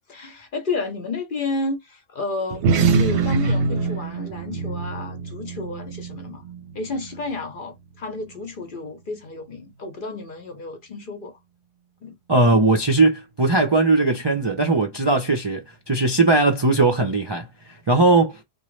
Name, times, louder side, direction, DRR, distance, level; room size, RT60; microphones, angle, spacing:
voice 1, 0.1-6.4 6.7-11.4 12.0-12.1, left 3 dB, 50° left, 0.9 m, -31 dB
sound 1, 2.5-7.3, right 4 dB, 70° right, 0.8 m, -24 dB
voice 2, 12.3-18.4, right 2 dB, 35° right, 0.4 m, -19 dB
3.0 x 2.3 x 3.1 m
omnidirectional pair, 1.3 m